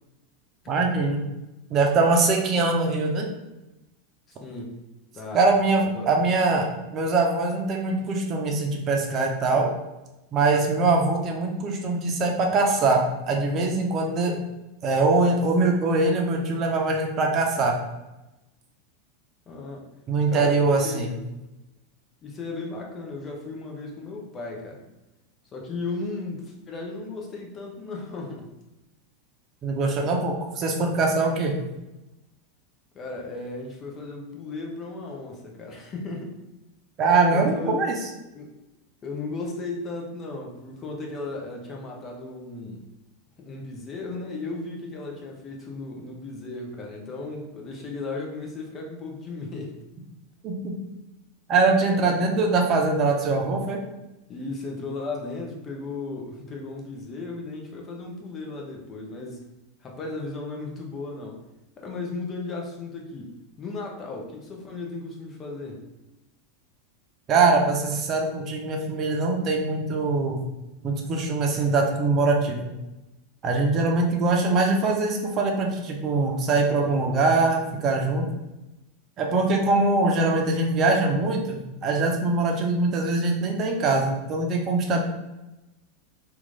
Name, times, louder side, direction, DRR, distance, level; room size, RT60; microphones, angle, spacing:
voice 1, 0.7-1.2 1.7-3.3 5.3-6.7 6.9-9.7 10.3-13.0 13.3-14.4 14.8-17.8 20.1-21.1 29.6-31.6 37.0-37.9 50.4-50.7 51.5-53.8 67.3-70.4 70.8-72.7 73.4-78.3 79.2-85.0, right 3 dB, 40° right, 1 dB, 0.7 m, -22 dB
voice 2, 4.3-4.8 5.1-5.4 5.7-6.1 19.5-19.9 20.3-21.1 22.2-24.8 25.5-28.5 32.9-36.3 37.3-37.8 38.3-38.6 39.0-42.8 43.4-49.8 51.9-52.3 54.3-59.5 59.8-61.4 61.8-63.3 63.6-65.8, left 3 dB, 35° left, 0 dB, 0.9 m, -35 dB
3.0 x 2.5 x 3.9 m, 0.98 s
hypercardioid pair, 95°, 0 cm